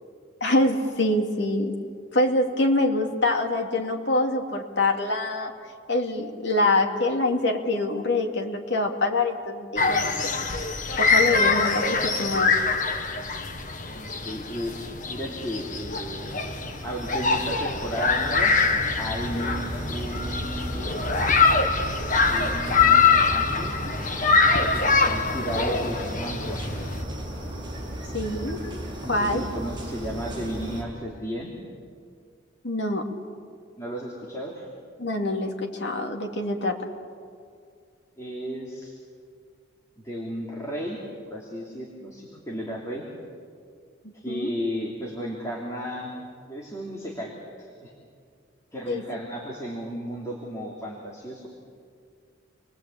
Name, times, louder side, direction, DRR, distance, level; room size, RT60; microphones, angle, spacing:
voice 1, 0.4-1.8 2.1-5.5 5.9-10.3 11.0-12.6 28.1-28.6 29.1-29.4 32.6-33.1 35.0-36.8 44.3-44.5 48.9-49.0, left 2 dB, 60° left, 2 dB, 2.6 m, -25 dB
sound 1, 9.8-27.0, left 4 dB, 40° left, 1.6 m, -24 dB
voice 2, 13.9-14.7 15.1-16.3 16.8-18.5 19.0-20.7 22.3-23.8 24.6-26.6 29.0-31.5 33.8-34.7 38.2-39.0 40.0-41.0 41.3-43.0 44.1-46.1 46.5-47.9 48.7-51.5, equal, 15° left, -4 dB, 3.2 m, -34 dB
sound 2, 15.0-30.8, right 1 dB, 25° right, 6.3 m, -36 dB
28.5 x 22.0 x 8.7 m, 2.2 s
head